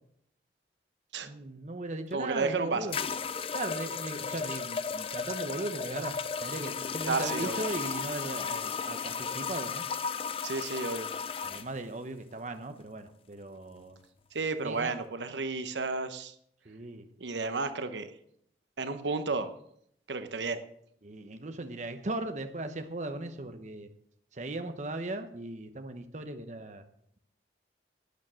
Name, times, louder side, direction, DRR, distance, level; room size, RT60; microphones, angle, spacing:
voice 1, 1.2-3.0 3.5-9.8 11.4-14.0 14.6-14.9 16.7-17.0 21.0-23.9 24.4-26.8, right 2 dB, 40° right, 8 dB, 0.9 m, -38 dB
sound 1, 2.1-2.2 2.9-11.7, left 6 dB, 30° left, 0.4 m, -35 dB
voice 2, 2.1-3.0 7.1-7.6 10.4-11.2 14.3-16.3 17.2-18.1 18.8-19.5 20.1-20.6, right 3 dB, 80° right, 10 dB, 1.0 m, -32 dB
12.0 x 9.3 x 6.3 m, 0.70 s
head